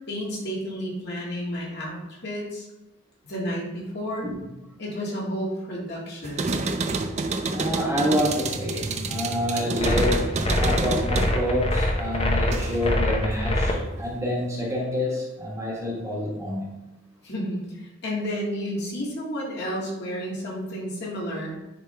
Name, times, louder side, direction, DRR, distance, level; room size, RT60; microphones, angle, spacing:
voice 1, 0.1-2.7 3.2-4.3 4.8-6.5 17.2-21.6, equal, 55° left, -4 dB, 1.9 m, -31 dB
sound 1, 6.2-13.0 13.3-14.2, right 3 dB, 35° right, 0.5 m, -29 dB
voice 2, 7.5-16.7, left 1 dB, 15° right, -4 dB, 1.3 m, -28 dB
sound 2, 9.8-13.7, left 1 dB, 30° left, 0.7 m, -24 dB
9.9 x 3.4 x 3.3 m, 0.98 s
head